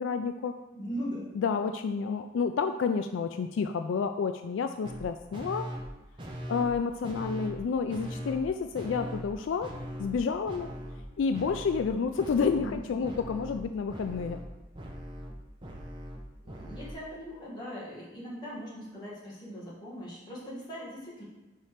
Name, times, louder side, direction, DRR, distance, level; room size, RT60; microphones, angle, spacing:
voice 1, 0.0-0.6 1.4-5.7 6.5-9.7 10.0-10.7 11.2-14.4, left 5 dB, 75° left, 8 dB, 0.3 m, -30 dB
voice 2, 0.7-1.3 12.5-13.2 16.4-21.2, equal, 20° left, -7 dB, 2.0 m, -40 dB
sound 1, 4.8-5.0 5.3-5.9 6.2-6.8 7.0-7.6 7.9-8.5 8.7-9.3 9.6-10.2 10.5-11.1 11.3-11.9 12.2-12.8 13.0-16.9, equal, 25° right, 0.8 m, -40 dB
5.6 x 4.2 x 4.9 m, 1.1 s
head